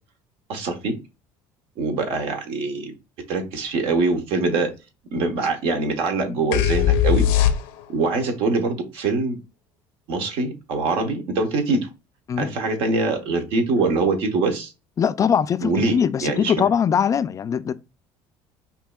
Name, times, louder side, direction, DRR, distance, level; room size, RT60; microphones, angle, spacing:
voice 1, 0.5-0.9 1.8-2.9 3.3-4.7 5.1-7.3 7.9-9.4 10.1-11.9 12.4-14.7 15.6-16.6, right 3 dB, 70° right, 1.1 m, -23 dB
sound 1, 6.5-8.1, left 10 dB, 85° left, 0.7 m, -19 dB
voice 2, 15.0-17.7, left 7 dB, 35° left, 0.3 m, -21 dB
5.4 x 2.7 x 2.3 m
supercardioid pair, 95°, 10 cm